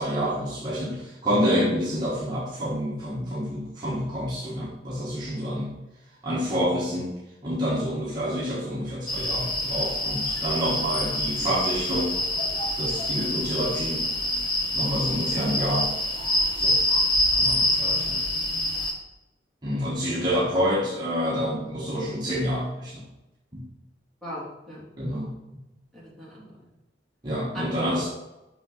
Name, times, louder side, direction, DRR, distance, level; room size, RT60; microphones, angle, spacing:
voice 1, 0.0-5.7 6.2-7.1 7.4-12.1 12.8-14.1 14.7-15.9 16.6-16.8 17.4-18.2 19.6-23.0 23.5-23.6 25.0-25.4 27.2-28.1, equal, 25° right, -7 dB, 1.6 m, -28 dB
sound 1, 9.1-18.9, left 1 dB, 25° left, 1.6 m, -26 dB
voice 2, 24.2-24.8 25.9-26.5 27.5-27.9, equal, ahead, -8 dB, 3.2 m, -37 dB
9.0 x 6.3 x 4.1 m, 0.95 s
head